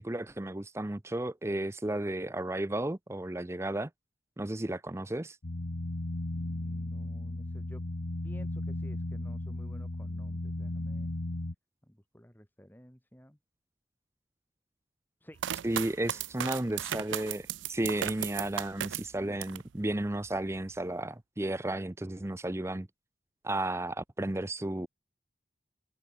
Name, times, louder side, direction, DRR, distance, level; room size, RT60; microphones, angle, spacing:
voice 1, 0.0-3.9 4.4-5.4 15.6-22.9 23.4-24.9, right 1 dB, 15° right, 0.6 m, -33 dB
sound 1, 5.4-11.6, left 2 dB, 90° left, 1.3 m, -35 dB
voice 2, 6.3-7.8 8.2-11.2 11.8-13.4 15.2-15.4, equal, 10° left, 4.7 m, -53 dB
sound 2, 15.4-19.7 20.1-20.8, right 10 dB, 85° right, 0.4 m, -36 dB
open air
head